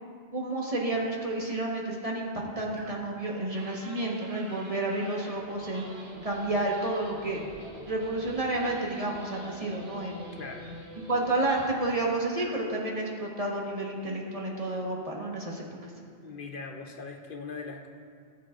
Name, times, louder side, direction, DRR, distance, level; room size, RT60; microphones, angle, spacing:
voice 1, 0.3-5.8 6.2-7.4 7.9-10.4 11.1-15.9, right 2 dB, 35° right, -2 dB, 1.3 m, -30 dB
sound 1, 0.9-1.1 2.8-3.2 3.5-11.9 12.3-12.6, right 1 dB, 70° right, 1.4 m, -47 dB
voice 2, 10.3-10.7 15.5-15.6 16.2-17.9, left 4 dB, 55° left, 3 dB, 0.8 m, -40 dB
18.5 x 7.4 x 2.5 m, 2.1 s
omnidirectional pair, 1.1 m